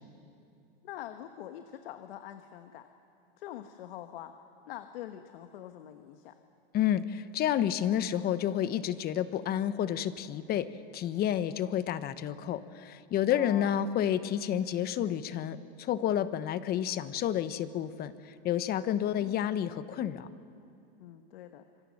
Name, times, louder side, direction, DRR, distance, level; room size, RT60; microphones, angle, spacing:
voice 1, 0.8-2.9 3.4-4.3 4.7-6.3 13.3-13.8 19.2-19.7 21.0-21.7, left 12 dB, 75° left, 8 dB, 1.3 m, -45 dB
voice 2, 6.7-10.7 10.9-20.3, left 10 dB, 35° left, 13 dB, 1.1 m, -30 dB
26.5 x 24.5 x 6.5 m, 2.6 s
supercardioid pair, 125°, 29 cm